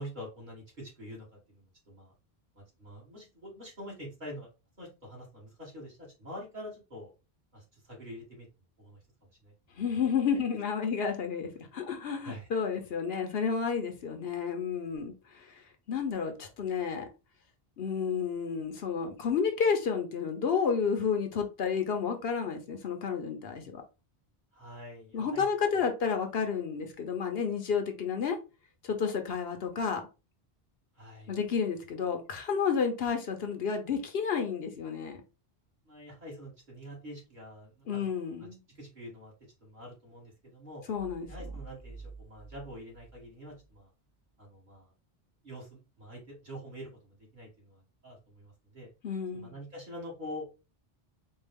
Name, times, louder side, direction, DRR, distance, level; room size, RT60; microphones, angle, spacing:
voice 1, 0.0-2.1 2.5-4.5 4.8-7.1 7.5-8.5 8.8-9.5 12.2-12.5 24.5-25.8 30.9-31.3 35.8-38.1 38.4-38.5 38.7-39.3 39.6-40.8 41.3-43.9 44.4-44.9 45.4-48.9 49.3-50.6, equal, 45° right, 2.4 m, -46 dB
voice 2, 9.8-15.6 15.9-17.1 17.8-23.8 25.1-28.4 28.8-30.0 31.3-35.2 37.9-38.6 40.9-41.3 49.0-49.5, left 6 dB, 75° left, 1.0 m, -31 dB
sound 1, 40.9-43.8, right 4 dB, 20° right, 1.0 m, -47 dB
4.5 x 2.4 x 3.4 m
omnidirectional pair, 1.1 m